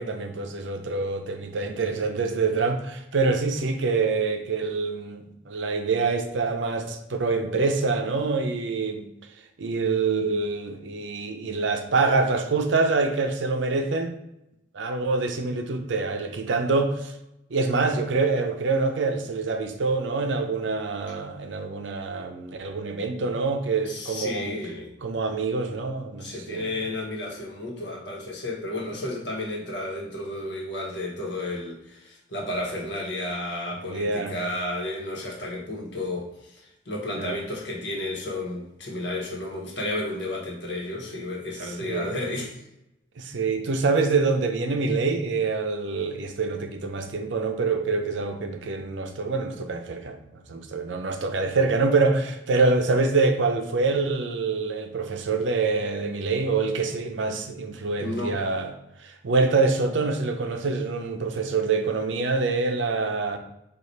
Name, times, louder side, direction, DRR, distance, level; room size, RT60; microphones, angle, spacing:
voice 1, 0.0-9.1 9.6-14.1 14.7-17.1 17.5-24.5 25.0-26.7 33.9-34.3 37.1-37.4 41.8-42.2 43.2-58.7 59.0-63.4, right 3 dB, 75° right, 6 dB, 0.5 m, -25 dB
voice 2, 23.9-24.9 26.2-42.6 58.0-58.4, left 1 dB, 65° left, -2 dB, 1.2 m, -32 dB
4.8 x 2.4 x 4.1 m, 0.85 s
head